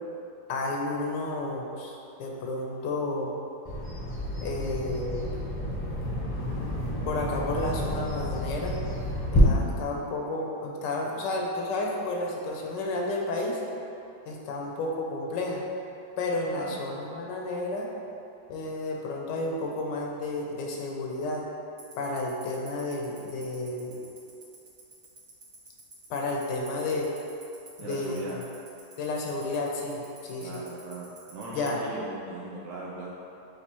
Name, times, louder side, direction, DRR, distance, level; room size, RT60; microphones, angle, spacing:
voice 1, 0.5-3.4 4.4-5.4 7.0-8.8 9.3-13.6 14.3-15.6 16.2-17.9 18.5-21.4 22.0-24.0 26.1-27.1 27.8-28.2 29.0-30.6 31.5-31.8, left 2 dB, 80° left, -1 dB, 1.2 m, -31 dB
Bird vocalization bird call bird song, 3.6-9.4, left 1 dB, 25° left, 0.4 m, -31 dB
voice 2, 16.5-17.0 27.8-28.4 30.4-33.1, right 2 dB, 75° right, -5 dB, 1.2 m, -39 dB
Tick-tock, 21.8-31.7, right 6 dB, 45° right, 1.0 m, -48 dB
6.7 x 2.7 x 2.9 m, 2.7 s
omnidirectional pair, 1.9 m